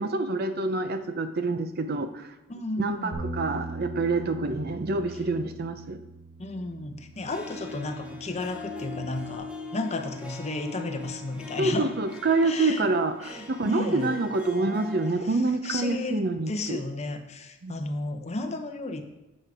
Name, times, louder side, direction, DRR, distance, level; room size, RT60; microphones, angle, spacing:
voice 1, 0.0-2.3 2.8-6.0 11.6-16.8 17.6-17.8, right 3 dB, 50° right, 9 dB, 0.6 m, -27 dB
voice 2, 2.5-3.3 6.4-11.9 12.4-12.9 13.2-14.1 15.2-15.4 15.6-19.0, left 2 dB, 30° left, 6 dB, 0.8 m, -33 dB
Bass guitar, 3.1-9.4, right 2 dB, 80° right, 2.2 m, -41 dB
Harp, 7.3-15.1, left 2 dB, 5° right, 0.9 m, -41 dB
9.0 x 6.4 x 4.9 m, 1.0 s
head